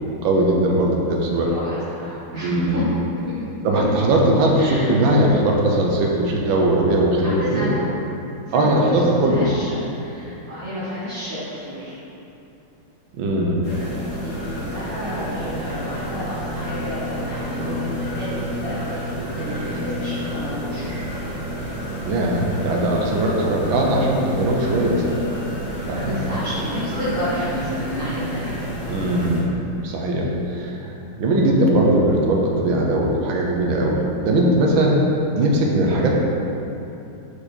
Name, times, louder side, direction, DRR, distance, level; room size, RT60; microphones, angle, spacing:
voice 1, 0.2-1.5 2.4-2.8 3.6-7.7 8.5-9.5 13.1-13.6 22.0-25.0 25.9-26.4 28.8-29.5 29.8-35.0 35.3-36.1, right 1 dB, 85° right, -1 dB, 1.6 m, -19 dB
voice 2, 1.4-2.8 3.3-3.4 3.7-3.8 4.5-5.1 7.2-7.8 8.5-11.9 14.2-14.3 14.6-19.0 19.3-21.0 25.9-28.5, equal, 30° right, -13 dB, 1.8 m, -31 dB
sound 1, 13.6-29.4, equal, 70° left, 2.3 m, -30 dB
6.6 x 4.9 x 4.3 m, 2.8 s
omnidirectional pair, 2.1 m